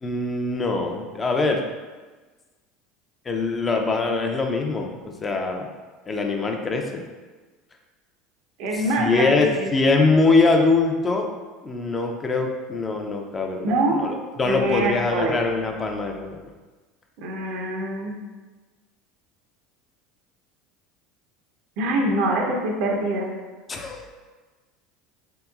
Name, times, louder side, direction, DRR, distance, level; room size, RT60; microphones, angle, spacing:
voice 1, 0.0-1.6 3.3-5.7 6.1-7.0 8.7-11.3 11.6-16.4 23.7-24.1, left 3 dB, 25° left, 2 dB, 0.4 m, -23 dB
voice 2, 8.6-9.7 13.6-14.0 14.5-15.4 17.2-18.1 21.8-23.3, right 1 dB, 65° right, 1 dB, 0.6 m, -24 dB
3.4 x 2.9 x 2.3 m, 1.3 s
hypercardioid pair, 80°, 0 cm